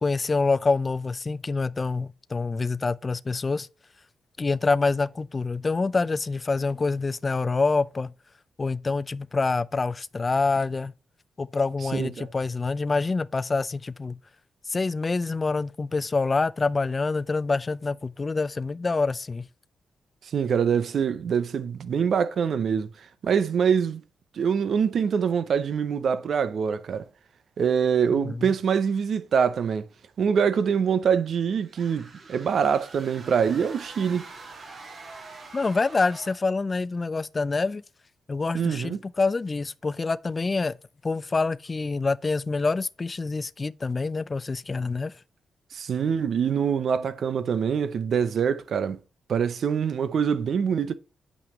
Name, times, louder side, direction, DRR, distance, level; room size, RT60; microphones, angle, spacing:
voice 1, 0.0-3.7 4.4-8.1 8.6-10.9 11.4-14.2 14.7-19.5 28.1-28.5 35.5-37.8 38.3-40.8 41.0-45.1, left 3 dB, 35° left, 0.4 m, -26 dB
voice 2, 11.9-12.3 20.2-22.9 23.2-24.0 24.3-27.0 27.6-29.9 30.2-34.3 38.5-39.0 45.7-49.0 49.3-50.9, right 7 dB, 65° right, 0.7 m, -24 dB
sound 1, 31.6-36.5, right 3 dB, 50° right, 2.1 m, -45 dB
8.6 x 5.3 x 3.1 m
cardioid pair, 80°, 0 cm